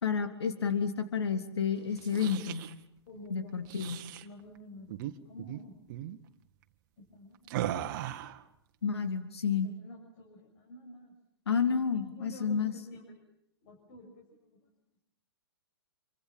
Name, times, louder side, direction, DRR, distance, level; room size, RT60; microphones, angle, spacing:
voice 1, 0.0-2.6 3.3-4.0 8.8-9.7 11.5-12.7, left 6 dB, 75° left, 8 dB, 3.1 m, -30 dB
sound 1, 1.9-2.7 3.6-4.2 4.9-5.1 5.4-5.6 5.9-6.2 7.5-8.4, right 12 dB, 45° right, 1.7 m, -37 dB
voice 2, 3.1-3.9 4.2-5.8 7.0-8.2 9.6-11.1 11.8-13.2 13.6-14.6, equal, 50° left, 2 dB, 6.6 m, -50 dB
28.5 x 24.5 x 7.5 m, 0.74 s
figure-of-eight pair, 120°, 14 cm